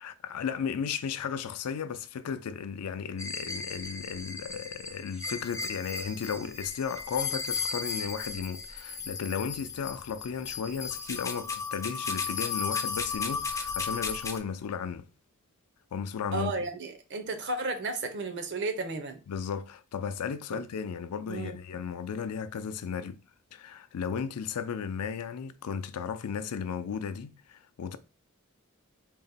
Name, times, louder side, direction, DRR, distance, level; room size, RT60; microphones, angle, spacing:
voice 1, 0.0-15.1 15.9-16.5 19.3-23.2 23.5-28.0, left 6 dB, 90° left, 0.4 m, -35 dB
sound 1, 3.2-14.4, left 5 dB, 15° left, 0.3 m, -35 dB
voice 2, 16.3-19.2 20.5-20.6 21.3-21.6, right 2 dB, 50° right, 0.6 m, -33 dB
4.0 x 2.1 x 4.0 m
head